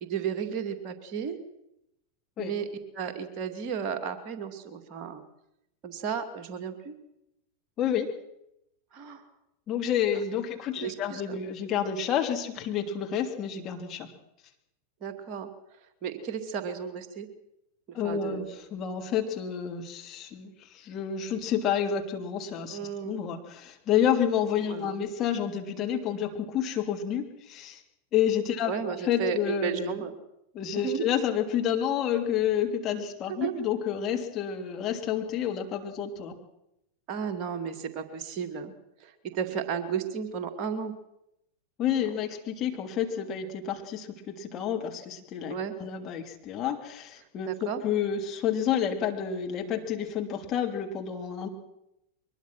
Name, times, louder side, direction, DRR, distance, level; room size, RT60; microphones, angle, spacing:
voice 1, 0.0-1.4 2.4-2.7 2.9-5.2 5.8-6.9 8.9-9.2 10.8-11.4 15.0-15.5 16.0-17.3 18.0-18.6 22.7-23.2 24.7-25.0 28.7-30.2 30.8-31.1 33.4-33.5 37.1-38.7 39.0-40.9 42.0-42.1 45.5-45.7 47.5-47.8, right 7 dB, 35° right, 6 dB, 2.5 m, -33 dB
voice 2, 7.8-8.1 9.7-14.1 17.9-27.8 28.1-30.0 30.5-36.4 41.8-45.5 45.8-51.5, left 8 dB, 30° left, 3 dB, 3.0 m, -29 dB
23.0 x 20.5 x 6.2 m, 0.83 s
figure-of-eight pair, 90°, 0 cm